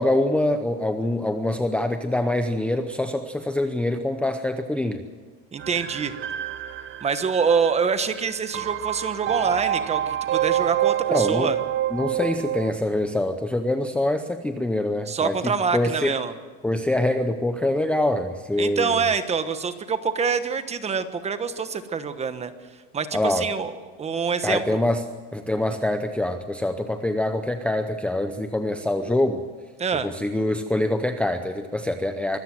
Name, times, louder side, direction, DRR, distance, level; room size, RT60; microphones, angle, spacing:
voice 1, 0.0-5.0 11.1-11.5 11.9-16.1 16.6-19.0 23.1-23.5 24.4-25.0 25.3-29.4 30.0-32.4, left 1 dB, 5° left, 7 dB, 0.7 m, -25 dB
voice 2, 5.5-6.1 7.0-11.6 15.1-16.3 18.6-22.5 22.9-23.7 24.0-24.8 29.8-30.1, right 5 dB, 20° right, 11 dB, 1.2 m, -25 dB
sound 1, 5.6-12.7, right 12 dB, 35° right, 0.8 m, -27 dB
24.5 x 15.0 x 7.8 m, 1.5 s
cardioid pair, 150°, 31 cm